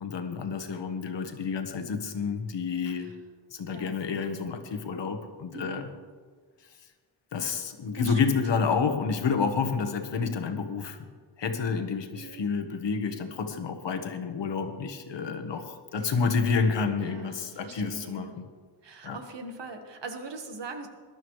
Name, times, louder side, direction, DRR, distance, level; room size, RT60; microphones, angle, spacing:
voice 1, 0.0-3.1 3.5-5.9 7.3-11.0 11.4-18.5 19.0-19.2, left 5 dB, 65° left, 7 dB, 1.3 m, -29 dB
voice 2, 5.5-5.8 7.9-8.4 12.1-12.4 15.9-16.1 17.0-18.3 18.8-20.9, right 3 dB, 65° right, 5 dB, 1.5 m, -42 dB
21.0 x 12.0 x 3.2 m, 1.5 s
wide cardioid pair, 180°, 46 cm